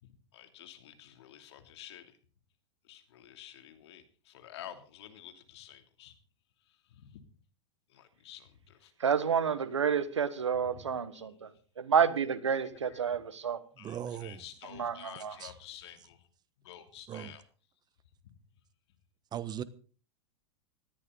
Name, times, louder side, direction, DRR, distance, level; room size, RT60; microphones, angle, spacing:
voice 1, 0.0-2.2 2.8-6.2 6.7-7.2 7.9-8.9 9.4-9.6 10.7-11.3 12.6-13.0 13.8-16.3 16.6-17.4 18.2-18.3, left 11 dB, 65° left, 3.0 m, -51 dB
voice 2, 9.0-11.5 11.8-13.6 14.7-15.4, right 7 dB, 90° right, 1.5 m, -29 dB
voice 3, 13.8-14.4 15.4-15.5 17.1-17.3 19.3-19.6, right 9 dB, 30° right, 1.3 m, -38 dB
19.0 x 14.0 x 4.0 m
hypercardioid pair, 105°, 15 cm